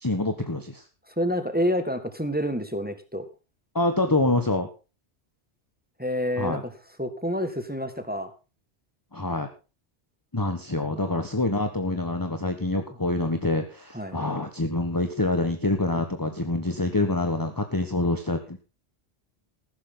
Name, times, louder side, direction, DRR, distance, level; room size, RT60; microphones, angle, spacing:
voice 1, 0.0-0.8 3.7-4.7 6.4-6.6 9.1-9.5 10.3-18.6, left 2 dB, 20° left, 6 dB, 1.3 m, -26 dB
voice 2, 1.1-3.3 6.0-6.7 7.0-8.3 10.9-11.2 13.9-14.2, equal, 10° right, 8 dB, 1.8 m, -28 dB
15.0 x 12.5 x 3.9 m, 0.31 s
omnidirectional pair, 1.1 m